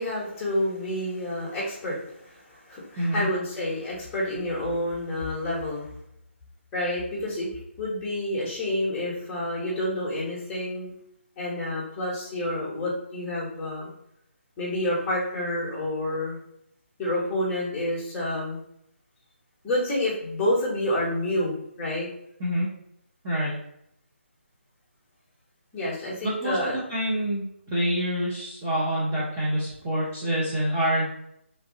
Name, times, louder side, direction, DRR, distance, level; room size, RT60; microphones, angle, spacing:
voice 1, 0.0-5.9 6.7-7.5 7.8-10.9 11.4-13.9 14.6-16.4 17.0-18.6 19.6-22.1 25.7-26.8, left 1 dB, 10° left, -8 dB, 0.8 m, -29 dB
voice 2, 3.0-3.3 22.4-22.7 23.2-23.5 26.2-31.1, equal, 15° right, -9 dB, 0.5 m, -26 dB
3.0 x 2.6 x 2.6 m, 0.75 s
figure-of-eight pair, 165°, 7 cm